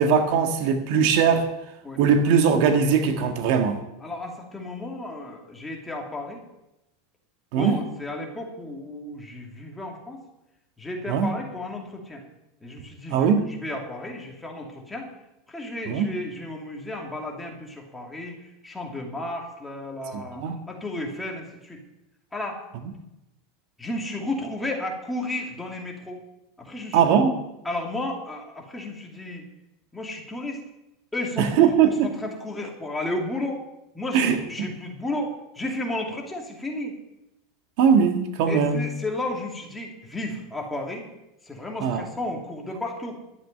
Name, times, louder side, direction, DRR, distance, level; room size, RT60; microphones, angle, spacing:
voice 1, 0.0-1.5 2.0-3.8 7.5-7.8 11.1-11.3 13.1-13.4 15.9-16.1 20.1-20.6 26.9-27.3 31.4-32.1 34.1-34.4 37.8-38.9 41.8-42.0, right 6 dB, 60° right, 6 dB, 1.7 m, -20 dB
voice 2, 4.0-6.4 7.5-10.2 10.8-12.2 12.6-15.1 15.5-21.8 22.3-22.6 23.8-26.2 26.6-27.1 27.6-29.5 29.9-30.6 31.1-31.7 32.0-33.6 33.9-36.9 38.5-41.1 41.4-43.1, left 1 dB, 10° left, 1 dB, 2.7 m, -33 dB
12.0 x 8.9 x 9.1 m, 0.91 s
supercardioid pair, 145°, 0 cm